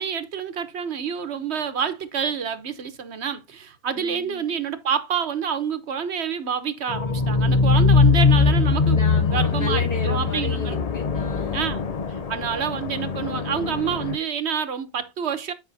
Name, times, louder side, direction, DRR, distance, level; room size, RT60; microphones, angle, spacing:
voice 1, 0.0-9.0 9.3-10.8 11.5-11.8 12.3-15.5, right 7 dB, 90° right, 1.3 m, -28 dB
voice 2, 3.9-4.5 7.7-8.0 8.3-8.5 8.9-11.7, left 3 dB, 60° left, 5.8 m, -34 dB
sound 1, 6.9-14.2, left 4 dB, 45° left, 0.7 m, -21 dB
9.9 x 5.5 x 2.7 m
omnidirectional pair, 1.1 m